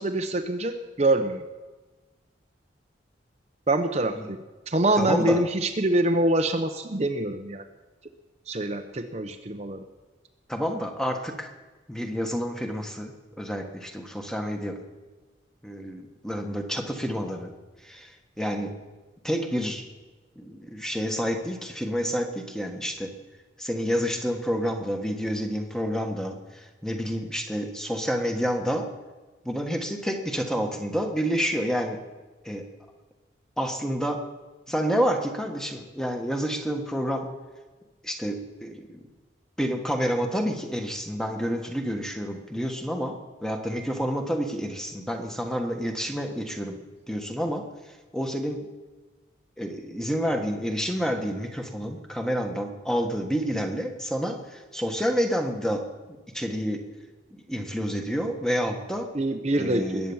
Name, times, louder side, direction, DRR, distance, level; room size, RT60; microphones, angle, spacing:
voice 1, 0.0-1.4 3.7-7.6 8.5-9.8 59.1-60.1, right 1 dB, 35° right, 6 dB, 0.8 m, -25 dB
voice 2, 5.0-5.4 10.5-11.5 11.9-13.1 13.4-14.8 15.6-17.5 17.8-18.1 18.4-18.7 19.2-19.9 20.4-23.1 23.6-28.8 29.4-32.0 32.4-32.6 33.6-34.2 34.7-37.3 38.0-39.0 39.6-43.1 43.4-46.8 47.1-47.6 48.1-48.6 49.6-55.8 56.3-56.8 57.5-59.1 59.5-60.1, equal, 5° left, 4 dB, 1.4 m, -29 dB
21.0 x 9.2 x 7.2 m, 1.2 s
head